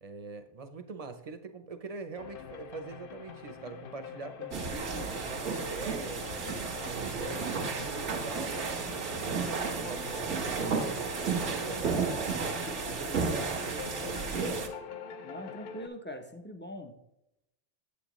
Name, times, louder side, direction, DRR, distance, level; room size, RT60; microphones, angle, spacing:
voice 1, 0.0-6.3 6.8-8.6 8.9-12.4 12.9-14.7, right 4 dB, 40° right, 9 dB, 0.6 m, -43 dB
sound 1, 2.2-15.9, left 8 dB, 55° left, 0.7 m, -44 dB
sound 2, 4.5-14.7, right 5 dB, 85° right, 1.5 m, -33 dB
voice 2, 15.2-16.9, equal, 15° left, 5 dB, 0.4 m, -42 dB
8.5 x 7.9 x 3.0 m, 0.85 s
omnidirectional pair, 1.2 m